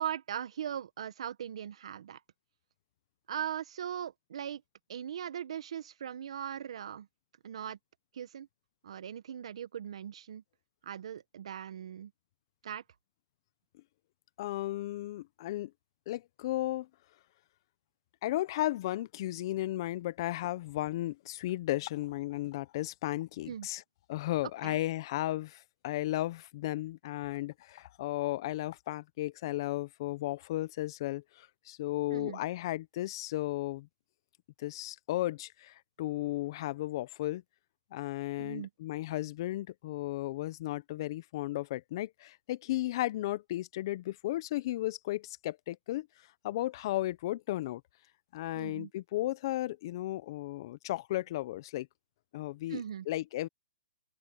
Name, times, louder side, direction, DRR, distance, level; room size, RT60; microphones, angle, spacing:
voice 1, 0.0-2.2 3.3-4.6 4.9-7.1 7.4-7.8 8.1-8.5 8.8-10.4 10.8-12.1 12.6-12.8 23.5-23.7 24.6-24.8 32.1-32.4 38.4-38.7 48.6-48.9 52.7-53.1, right 9 dB, 65° right, 1.4 m, -39 dB
voice 2, 14.4-15.7 16.1-16.9 18.2-23.8 24.1-33.9 34.6-37.4 37.9-46.1 46.4-47.8 48.3-51.9 52.3-53.5, left 16 dB, 45° left, 0.9 m, -34 dB
open air
hypercardioid pair, 145°, 3 cm